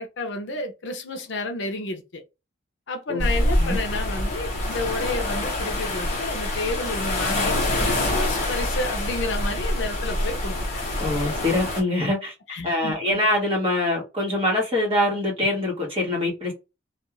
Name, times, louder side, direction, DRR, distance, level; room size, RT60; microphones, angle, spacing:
voice 1, 0.0-2.2 2.9-10.6 12.5-13.2, left 2 dB, 60° left, 0.6 m, -31 dB
voice 2, 3.1-3.8 11.0-12.3 12.6-16.5, left 1 dB, 25° right, 1.1 m, -24 dB
sound 1, 3.2-11.8, left 1 dB, 35° left, 0.9 m, -26 dB
2.4 x 2.3 x 3.0 m
head